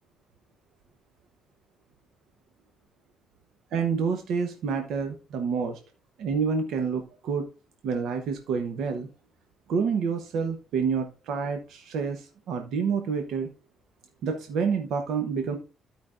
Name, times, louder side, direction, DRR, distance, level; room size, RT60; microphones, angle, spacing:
voice 1, 3.7-5.8 6.2-7.4 7.8-9.1 9.7-13.5 14.2-15.6, right 5 dB, 80° right, 5 dB, 0.9 m, -28 dB
13.5 x 5.1 x 2.5 m, 0.33 s
cardioid pair, 90°, 0 cm